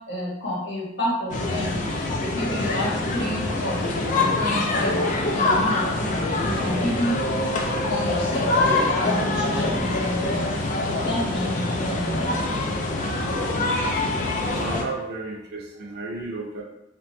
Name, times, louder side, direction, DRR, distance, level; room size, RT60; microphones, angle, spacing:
voice 1, 0.1-1.8 2.2-3.8 4.1-7.2 7.8-10.5 10.9-12.4, left 1 dB, 60° left, -5 dB, 0.8 m, -30 dB
sound 1, 1.3-14.8, left 2 dB, 40° left, 0.3 m, -24 dB
voice 2, 14.6-16.6, right 3 dB, 55° right, -1 dB, 0.6 m, -33 dB
2.9 x 2.1 x 2.6 m, 0.86 s
head